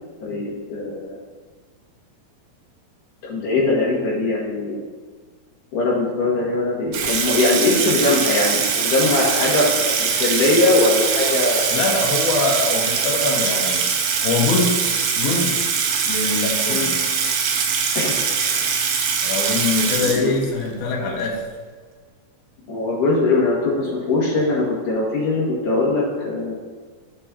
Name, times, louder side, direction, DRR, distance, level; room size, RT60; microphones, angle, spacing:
voice 1, 0.2-1.2 3.2-4.8 5.7-11.8 16.7-16.9 17.9-18.2 18.5-18.7 20.2-20.4 22.7-26.5, left 2 dB, 60° left, -6 dB, 3.0 m, -21 dB
Water tap faucet / Sink (filling or washing), 6.9-20.7, right 6 dB, 85° right, 2.7 m, -22 dB
voice 2, 11.7-13.8 14.2-14.8 15.2-15.5 16.1-16.9 19.2-21.4, left 3 dB, 75° left, -2 dB, 3.0 m, -23 dB
13.5 x 5.3 x 2.8 m, 1.5 s
omnidirectional pair, 4.5 m